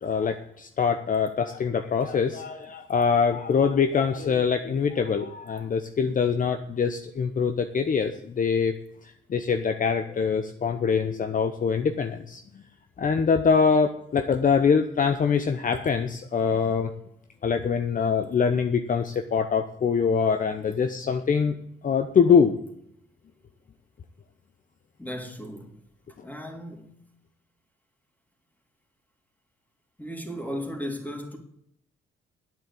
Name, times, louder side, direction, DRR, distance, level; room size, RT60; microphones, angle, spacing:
voice 1, 0.0-8.7 9.3-12.4 13.0-16.9 17.4-21.6 21.8-22.6 26.2-26.3, left 6 dB, 40° left, 1.0 m, -24 dB
voice 2, 25.0-25.8 26.2-27.0 30.0-31.4, equal, 10° left, 3.3 m, -36 dB
9.9 x 8.5 x 8.5 m
cardioid pair, 90°, 20 cm